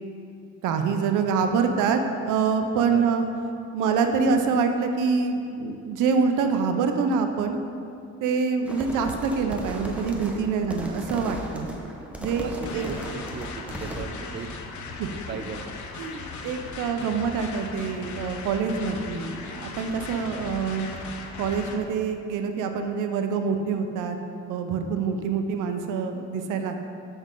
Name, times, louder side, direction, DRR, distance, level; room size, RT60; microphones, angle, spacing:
voice 1, 0.6-2.0 2.3-3.3 3.7-7.6 8.2-11.7 12.2-12.9 15.0-15.1 16.0-20.9 21.4-24.2 24.5-26.8, right 5 dB, 85° right, 6 dB, 0.7 m, -25 dB
sound 1, 8.7-14.0, equal, 5° right, 1.0 m, -36 dB
voice 2, 12.4-14.5 15.1-15.7 20.1-20.5, right 6 dB, 40° right, 7 dB, 0.5 m, -39 dB
sound 2, 12.6-21.8, left 4 dB, 75° left, 0.9 m, -38 dB
7.9 x 6.1 x 3.8 m, 2.5 s
cardioid pair, 90°, 30 cm